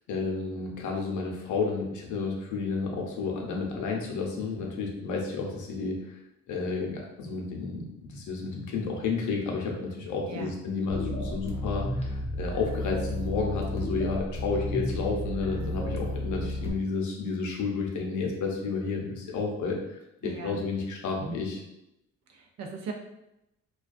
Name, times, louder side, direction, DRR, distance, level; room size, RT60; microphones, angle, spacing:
voice 1, 0.1-6.2 6.5-21.6, left 4 dB, 75° left, 0 dB, 0.7 m, -31 dB
sound 1, 10.9-16.7, equal, 20° left, 0.6 m, -32 dB
voice 2, 20.2-20.6 22.3-22.9, right 4 dB, 60° right, 2 dB, 0.6 m, -38 dB
2.3 x 2.2 x 2.5 m, 0.86 s
cardioid pair, 90°, 30 cm